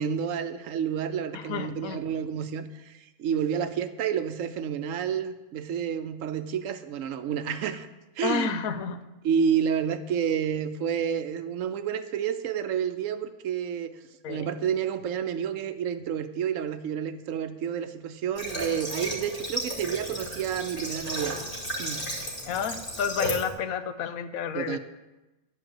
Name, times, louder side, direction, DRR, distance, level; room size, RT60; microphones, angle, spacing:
voice 1, 0.0-7.9 8.2-8.5 9.2-13.9 14.3-21.4 21.8-22.0 24.5-24.8, right 8 dB, 75° right, 11 dB, 1.0 m, -29 dB
voice 2, 1.3-2.0 8.2-9.0 14.2-14.5 22.5-24.8, left 7 dB, 85° left, 10 dB, 1.1 m, -30 dB
Water / Water tap faucet, 18.4-23.5, equal, 40° left, 2.6 m, -34 dB
10.5 x 4.9 x 7.6 m, 1.1 s
omnidirectional pair, 1.4 m